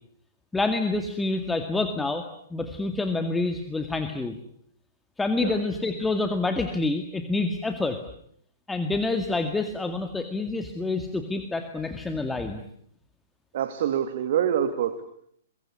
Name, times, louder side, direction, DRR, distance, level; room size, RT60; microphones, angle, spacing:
voice 1, 0.5-4.4 5.2-8.0 8.7-12.6, left 3 dB, 10° left, 6 dB, 2.0 m, -27 dB
voice 2, 13.5-15.1, right 9 dB, 55° right, 11 dB, 2.1 m, -26 dB
24.0 x 23.0 x 9.8 m, 0.69 s
figure-of-eight pair, 115°, 0 cm